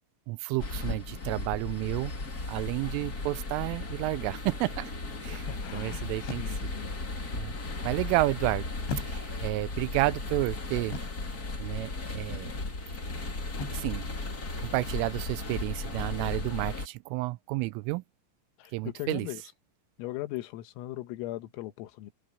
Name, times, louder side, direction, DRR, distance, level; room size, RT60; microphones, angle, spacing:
voice 1, 0.3-2.1 2.5-4.9 5.2-5.5 5.7-6.7 7.3-7.5 7.8-8.7 8.9-11.0 11.6-12.5 13.7-14.1 14.6-18.0 18.7-19.3, right 20 dB, 85° right, 3.1 m, -31 dB
sound 1, 0.6-16.9, left 3 dB, 30° left, 2.0 m, -36 dB
voice 2, 5.3-7.0 7.6-7.9 18.6-19.4 20.0-22.1, left 16 dB, 85° left, 4.0 m, -39 dB
sound 2, 6.3-6.8 8.9-9.6 10.9-11.4 13.6-14.0, left 4 dB, 65° left, 8.1 m, -39 dB
omnidirectional pair, 5.9 m